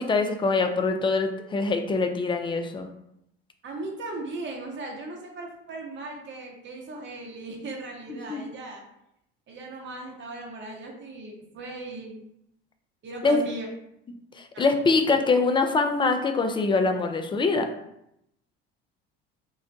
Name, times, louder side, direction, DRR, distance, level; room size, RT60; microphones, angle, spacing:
voice 1, 0.0-2.9 8.1-8.4 13.2-13.4 14.3-17.7, left 3 dB, 15° left, 6 dB, 0.4 m, -24 dB
voice 2, 3.6-8.8 9.5-12.2 13.0-13.7 14.5-14.7, right 2 dB, 40° right, 0 dB, 0.9 m, -38 dB
3.8 x 2.1 x 2.6 m, 0.80 s
hypercardioid pair, 70°, 30 cm